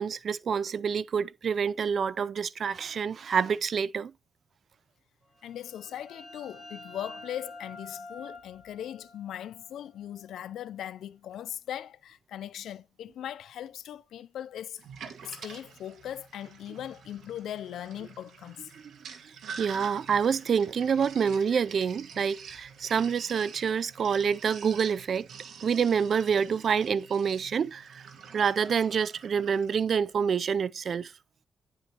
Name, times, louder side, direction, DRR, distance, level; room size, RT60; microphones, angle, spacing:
voice 1, 0.0-4.1 18.8-18.9 19.2-25.3 25.6-28.0 28.3-31.1, right 6 dB, 55° right, 0.4 m, -27 dB
voice 2, 5.4-14.8 15.2-18.7, left 11 dB, 85° left, 0.4 m, -39 dB
sound 1, 5.4-10.9, left 2 dB, 5° left, 6.5 m, -48 dB
Sink (filling or washing), 14.8-29.8, right 6 dB, 80° right, 1.7 m, -47 dB
9.7 x 7.8 x 2.9 m
cardioid pair, 105°, 0 cm